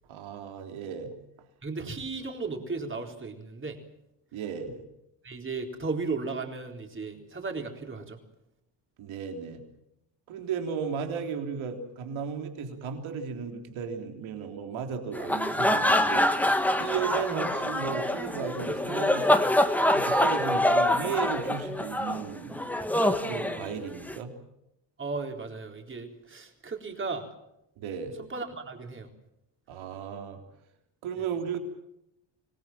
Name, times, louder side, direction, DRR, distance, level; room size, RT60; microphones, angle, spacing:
voice 1, 0.1-1.1 4.3-4.8 9.0-9.6 10.3-19.3 19.9-24.3 27.8-28.1 29.7-30.4 31.0-31.6, right 6 dB, 70° right, 4 dB, 3.6 m, -35 dB
voice 2, 1.6-3.8 5.2-8.2 25.0-27.3 28.2-29.1 31.2-31.3, right 4 dB, 25° right, 3 dB, 4.0 m, -35 dB
sound 1, 15.1-24.2, left 1 dB, 5° left, 1.5 m, -25 dB
25.0 x 19.5 x 7.4 m, 0.82 s
cardioid pair, 130°, 49 cm